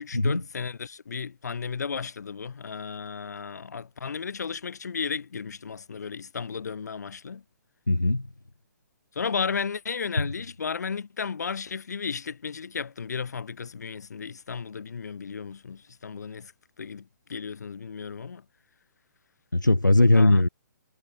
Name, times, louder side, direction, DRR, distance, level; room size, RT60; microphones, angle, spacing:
voice 1, 0.0-7.4 9.1-16.5 16.8-18.4 20.1-20.4, left 6 dB, 65° left, 6.2 m, -34 dB
voice 2, 7.9-8.3 10.2-10.3 19.5-20.5, left 2 dB, 90° left, 3.2 m, -20 dB
figure-of-eight pair, 130°, 10 cm